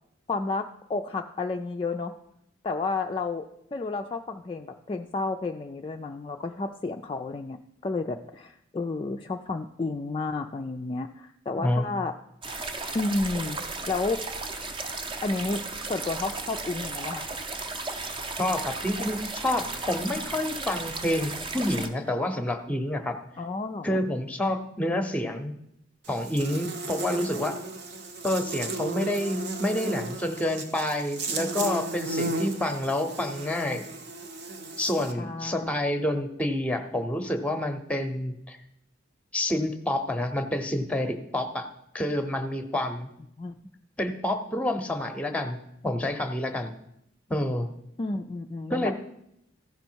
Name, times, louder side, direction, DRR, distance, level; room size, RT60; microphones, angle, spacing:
voice 1, 0.3-2.1 2.6-3.5 3.7-12.1 12.9-14.3 15.2-15.6 15.9-17.3 23.4-24.0 27.1-27.3 35.2-35.7 36.1-36.3 43.4-43.5 48.0-48.9, left 3 dB, 25° left, 3 dB, 0.3 m, -31 dB
sound 1, 12.4-21.9, right 3 dB, 25° right, 0.7 m, -35 dB
voice 2, 18.4-23.2 23.8-25.5 26.1-27.5 28.2-33.8 34.8-38.6 39.3-41.7 41.9-43.1 44.0-45.6 45.8-46.7 47.3-47.7 48.7-48.9, left 1 dB, 5° left, 7 dB, 0.8 m, -28 dB
Buzz, 26.0-35.1, right 2 dB, 55° right, 0.9 m, -35 dB
15.0 x 5.3 x 4.5 m, 0.79 s
head